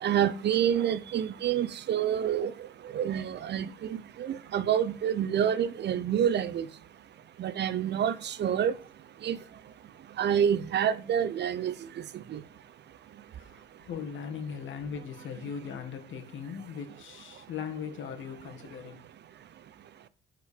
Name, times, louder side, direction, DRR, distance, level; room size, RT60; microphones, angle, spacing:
voice 1, 0.0-2.5 2.9-6.7 7.4-8.7 9.2-9.4 10.2-11.7 12.3-12.4, right 9 dB, 60° right, 0.7 m, -27 dB
voice 2, 13.4-19.0, left 7 dB, 75° left, 1.7 m, -39 dB
11.5 x 4.7 x 5.1 m
cardioid pair, 90°, 20 cm